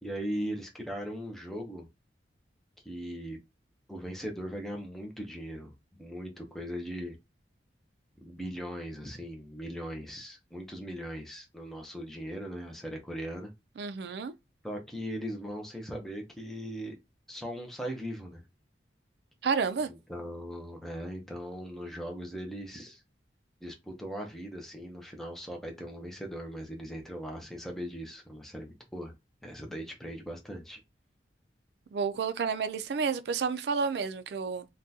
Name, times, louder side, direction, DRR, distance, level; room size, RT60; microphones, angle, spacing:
voice 1, 0.0-1.9 2.8-3.4 3.9-5.7 6.0-7.2 8.2-13.5 14.6-17.0 17.3-18.4 19.9-23.0 23.6-29.1 29.4-30.8, equal, ahead, 0.6 m, -39 dB
voice 2, 13.8-14.3 19.4-19.9 31.9-34.7, right 5 dB, 65° right, 0.4 m, -30 dB
3.6 x 2.2 x 2.7 m
head